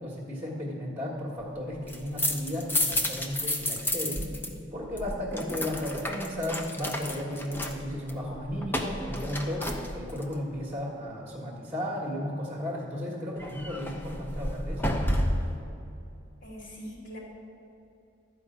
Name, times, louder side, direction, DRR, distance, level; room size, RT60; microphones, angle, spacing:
voice 1, 0.0-4.3 4.7-15.0, left 1 dB, 15° right, -5 dB, 1.5 m, -34 dB
sound 1, 1.7-4.5 4.7-10.3 13.4-15.6, left 1 dB, 10° left, 0.6 m, -31 dB
voice 2, 16.4-17.2, equal, 75° left, -5 dB, 3.1 m, -42 dB
13.0 x 5.2 x 7.8 m, 2.7 s
head